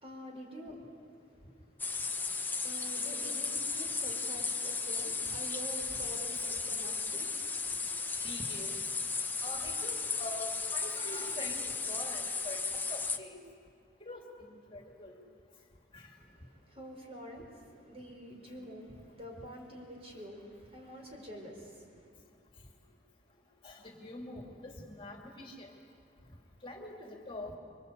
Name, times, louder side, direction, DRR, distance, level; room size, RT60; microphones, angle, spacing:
voice 1, 0.0-0.8 2.6-7.3 7.9-8.0 16.5-22.1, equal, 35° right, 0 dB, 4.8 m, -47 dB
sound 1, 1.8-13.2, left 4 dB, 10° left, 0.9 m, -35 dB
voice 2, 8.2-8.8 9.4-12.6 12.9-13.4 14.1-15.2 15.9-16.1 23.6-25.7 26.6-27.6, left 2 dB, 30° left, 0 dB, 2.6 m, -45 dB
26.5 x 23.5 x 8.2 m, 2.2 s
head